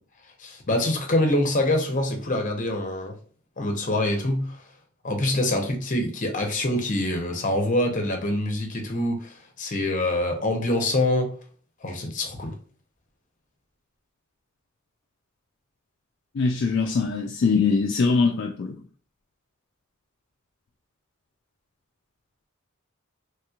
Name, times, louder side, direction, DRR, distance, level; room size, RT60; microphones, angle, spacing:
voice 1, 0.4-3.1 3.6-4.6 5.0-11.3 11.8-12.5, left 1 dB, 40° left, 0.8 m, -25 dB
voice 2, 16.3-18.8, left 4 dB, 60° left, 0.4 m, -22 dB
3.2 x 2.9 x 2.4 m
head